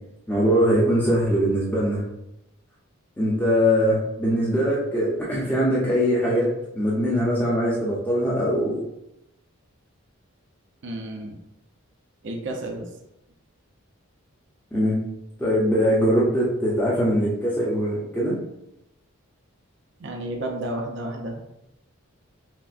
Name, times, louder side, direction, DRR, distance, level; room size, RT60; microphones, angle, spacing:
voice 1, 0.3-2.0 3.2-8.8 14.7-15.0 15.4-18.4, equal, 10° left, -7 dB, 0.6 m, -22 dB
voice 2, 10.8-11.4 12.2-12.9 20.0-21.4, right 1 dB, 55° right, 2 dB, 0.5 m, -31 dB
5.7 x 2.1 x 2.5 m, 0.86 s
head